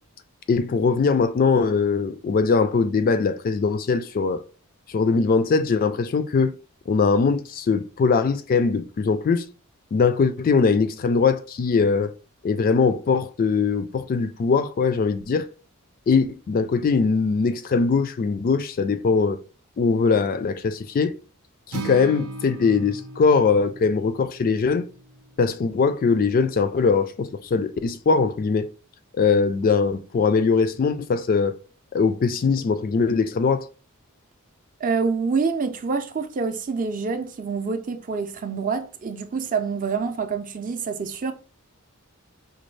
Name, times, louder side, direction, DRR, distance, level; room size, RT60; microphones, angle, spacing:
voice 1, 0.5-4.4 4.9-6.5 6.9-9.5 9.9-12.1 12.4-15.5 16.1-19.4 19.8-21.2 21.7-24.9 25.4-28.7 29.2-31.5 31.9-33.7, left 5 dB, 40° left, 0.3 m, -21 dB
Acoustic guitar, 21.7-25.9, right 3 dB, 85° right, 0.7 m, -38 dB
voice 2, 34.8-41.3, right 5 dB, 40° right, 0.5 m, -26 dB
5.1 x 2.2 x 3.2 m
head